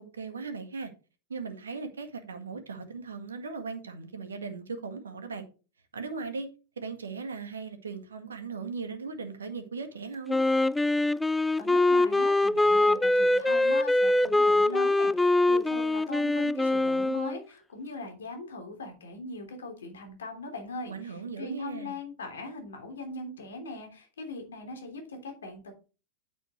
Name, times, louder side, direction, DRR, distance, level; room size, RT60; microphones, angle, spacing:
voice 1, 0.2-0.9 1.3-5.5 5.9-6.5 6.8-10.4 20.9-22.0, right 4 dB, 70° right, 1.7 m, -38 dB
Wind instrument woodwind instrument, 10.3-17.4, left 2 dB, 5° left, 0.3 m, -23 dB
voice 2, 11.6-25.7, left 2 dB, 65° left, 3.2 m, -40 dB
9.3 x 7.7 x 3.2 m
figure-of-eight pair, 90°, 0 cm